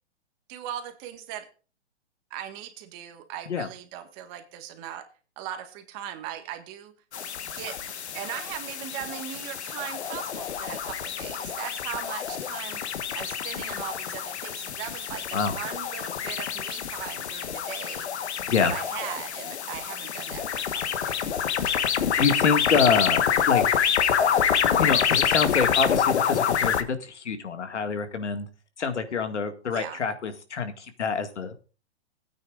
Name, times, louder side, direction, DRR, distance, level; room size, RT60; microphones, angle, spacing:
voice 1, 0.5-1.5 2.3-5.1 5.4-6.9 7.5-18.1 18.6-21.5 29.7-30.0, right 11 dB, 30° right, 7 dB, 1.6 m, -39 dB
sound 1, 7.1-26.8, left 8 dB, 70° left, 1.4 m, -27 dB
voice 2, 22.1-23.6 24.8-28.5 28.8-31.6, left 5 dB, 90° left, 8 dB, 2.1 m, -26 dB
17.0 x 9.2 x 2.5 m, 0.36 s
hypercardioid pair, 145°, 34 cm